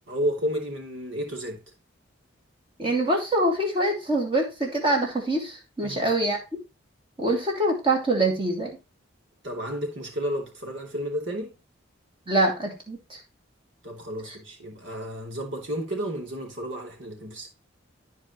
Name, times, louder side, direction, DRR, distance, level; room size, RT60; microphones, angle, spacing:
voice 1, 0.1-1.6 5.8-6.1 9.4-11.5 13.8-17.5, equal, 65° right, 3.1 m, -32 dB
voice 2, 2.8-6.4 7.2-8.8 12.3-13.2, right 1 dB, 25° right, 2.6 m, -24 dB
13.5 x 4.7 x 3.0 m
head